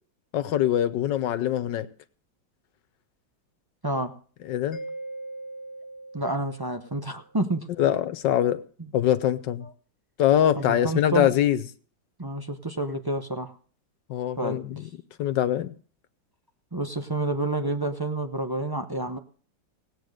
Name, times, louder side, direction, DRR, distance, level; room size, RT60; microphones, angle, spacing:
voice 1, 0.3-1.9 4.4-4.8 7.8-8.6 8.9-9.7 10.2-11.6 14.1-14.8 15.2-15.7, left 11 dB, 70° left, 1.6 m, -23 dB
Mallet percussion, 4.7-7.3, right 2 dB, 35° left, 1.6 m, -40 dB
voice 2, 6.1-7.7 9.6-9.7 10.6-11.3 12.2-13.5 14.4-14.6 16.7-19.2, right 2 dB, 30° right, 0.4 m, -29 dB
17.0 x 9.0 x 6.5 m
omnidirectional pair, 2.1 m